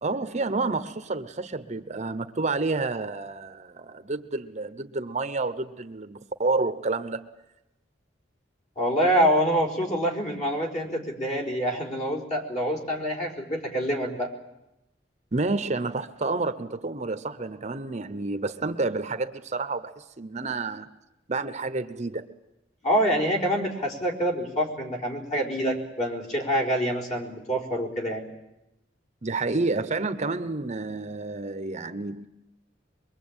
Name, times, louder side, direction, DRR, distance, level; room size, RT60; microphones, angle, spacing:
voice 1, 0.0-7.3 15.3-20.9 21.3-22.3 29.2-32.3, right 3 dB, 40° right, 11 dB, 0.9 m, -29 dB
voice 2, 8.8-14.3 22.8-28.2, equal, 40° left, 0 dB, 4.6 m, -26 dB
23.5 x 23.0 x 8.9 m, 0.92 s
head